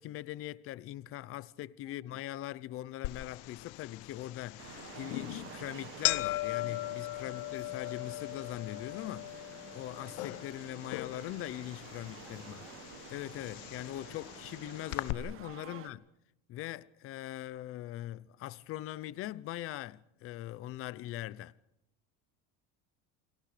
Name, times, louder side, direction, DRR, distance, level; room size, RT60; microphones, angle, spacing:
voice 1, 0.0-12.6 13.1-16.0 16.5-21.5, left 14 dB, 40° left, 0.8 m, -41 dB
voice 2, 1.8-2.2 7.1-7.4 12.2-12.8 15.7-16.0, right 1 dB, ahead, 2.2 m, -61 dB
sound 1, 3.0-15.1, left 19 dB, 80° left, 1.0 m, -39 dB
sound 2, 4.6-15.9, right 11 dB, 40° right, 1.3 m, -51 dB
29.5 x 24.0 x 5.1 m
cardioid pair, 170°, 34 cm